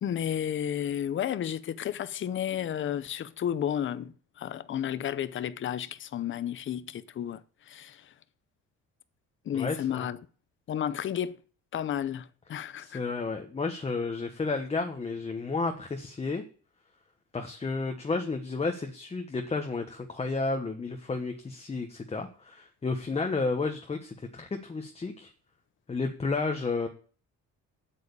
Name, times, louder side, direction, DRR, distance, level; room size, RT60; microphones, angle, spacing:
voice 1, 0.0-7.4 7.7-8.1 9.5-10.2 10.7-11.4 11.7-13.0, left 9 dB, 40° left, 0.7 m, -32 dB
voice 2, 9.5-10.1 12.8-16.4 17.3-25.3 25.9-26.9, left 3 dB, 20° left, 1.2 m, -32 dB
8.2 x 7.6 x 8.5 m
cardioid pair, 140°, 32 cm